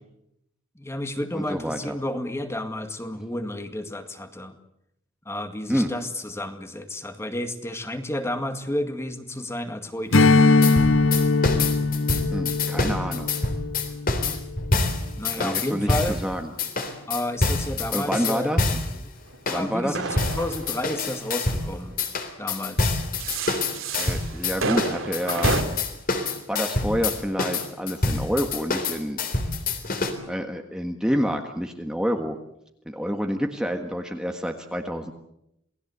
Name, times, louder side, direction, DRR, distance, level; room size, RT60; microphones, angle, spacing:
voice 1, 0.8-4.6 5.3-10.3 15.2-16.2 17.1-18.5 19.5-22.0 22.4-23.0, left 1 dB, 15° left, 8 dB, 2.0 m, -31 dB
voice 2, 1.3-1.9 5.7-5.9 12.3-13.3 15.3-16.5 17.9-18.6 19.5-19.9 24.0-25.6 26.5-29.2 30.3-32.4 32.8-35.1, equal, 5° right, 4 dB, 1.5 m, -28 dB
Strum, 10.1-14.9, left 3 dB, 70° left, 1.5 m, -21 dB
sound 1, 10.6-16.2 16.6-18.9 19.5-19.6 20.2-21.7 22.0-30.1, left 3 dB, 45° left, 3.6 m, -26 dB
sound 2, 19.3-22.0 22.9-25.6, right 4 dB, 75° right, 3.3 m, -31 dB
28.0 x 19.0 x 8.1 m, 0.79 s
head